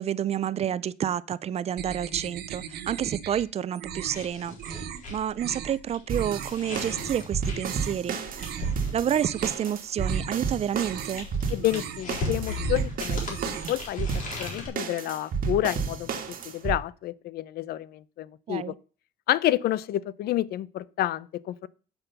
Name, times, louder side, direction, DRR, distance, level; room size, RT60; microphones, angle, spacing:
voice 1, 0.0-8.2 8.9-11.3 18.5-18.8, right 9 dB, 40° right, 0.4 m, -29 dB
sound 1, 1.8-3.4 3.7-4.3 4.6-5.0 5.4-5.8 6.1-6.5 6.8-7.2 7.5-8.0 8.3-8.7 9.1-9.7 10.0-10.4 10.7-11.2 11.6-12.1 12.4-12.9 13.2-13.8, right 9 dB, 70° right, 1.0 m, -38 dB
sound 2, 4.1-9.9 10.7-14.7, left 3 dB, 50° left, 4.1 m, -38 dB
sound 3, 6.1-16.8, right 5 dB, 55° right, 1.6 m, -31 dB
voice 2, 11.5-14.1 14.4-16.1 16.4-18.7 19.3-21.7, left 14 dB, 70° left, 0.6 m, -29 dB
7.0 x 5.7 x 6.7 m
cardioid pair, 110°, 17 cm